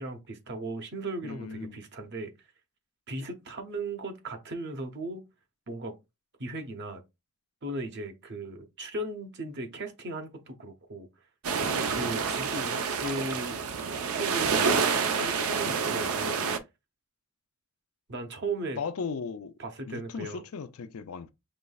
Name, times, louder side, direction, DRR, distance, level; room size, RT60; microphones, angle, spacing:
voice 1, 0.0-2.3 3.1-5.2 5.7-5.9 6.4-7.0 7.6-11.1 11.6-13.6 14.2-16.4 18.1-18.8 19.6-20.4, right 2 dB, 55° right, 0.8 m, -37 dB
voice 2, 1.2-1.8 18.8-19.5 19.9-21.3, left 5 dB, 85° left, 0.5 m, -36 dB
sound 1, 11.4-16.6, right 5 dB, 85° right, 0.6 m, -28 dB
5.2 x 3.1 x 2.3 m
head